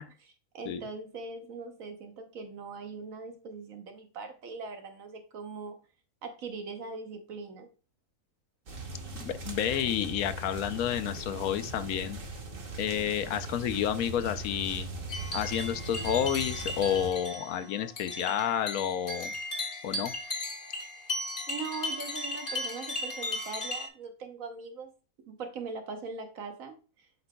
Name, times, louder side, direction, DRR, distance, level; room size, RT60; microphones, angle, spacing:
voice 1, 0.0-5.8 6.2-7.7 21.5-24.9 25.3-27.1, right 4 dB, 70° right, 6 dB, 1.4 m, -41 dB
sound 1, 8.7-17.1, right 2 dB, 45° right, 1.1 m, -40 dB
voice 2, 9.2-12.2 12.8-14.9 15.3-19.3 19.8-20.1, left 9 dB, 80° left, 10 dB, 1.1 m, -30 dB
sound 2, 15.1-23.9, left 2 dB, 40° left, 1.4 m, -36 dB
8.0 x 5.3 x 2.2 m, 0.34 s
omnidirectional pair, 1.5 m